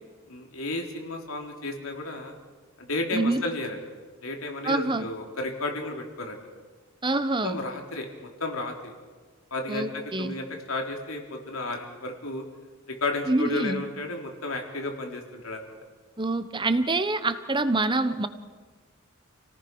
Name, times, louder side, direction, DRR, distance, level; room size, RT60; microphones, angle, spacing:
voice 1, 0.3-2.3 2.8-3.8 4.2-6.4 7.4-8.9 9.5-12.4 12.9-15.7, left 2 dB, 80° left, 2 dB, 3.9 m, -33 dB
voice 2, 3.1-3.4 4.6-5.0 7.0-7.6 9.7-10.3 13.3-13.8 16.2-18.3, right 2 dB, 25° right, 11 dB, 1.1 m, -26 dB
29.5 x 18.0 x 6.3 m, 1.4 s
head